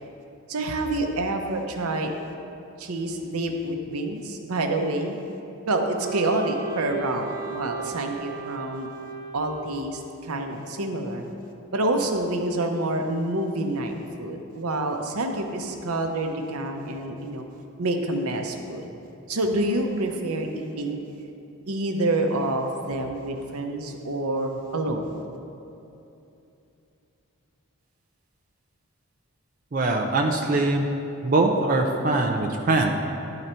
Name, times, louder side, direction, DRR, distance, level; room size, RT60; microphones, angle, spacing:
voice 1, 0.5-2.1 2.8-5.2 5.6-8.9 9.3-11.2 11.7-17.4 17.8-18.8 19.3-21.0 21.7-25.1, right 2 dB, 85° right, 4 dB, 0.7 m, -27 dB
Wind instrument woodwind instrument, 6.0-10.0, right 5 dB, 15° right, 1.8 m, -37 dB
voice 2, 29.7-30.9 31.2-32.9, right 2 dB, 40° right, 2 dB, 0.4 m, -22 dB
11.0 x 4.0 x 4.3 m, 2.8 s
head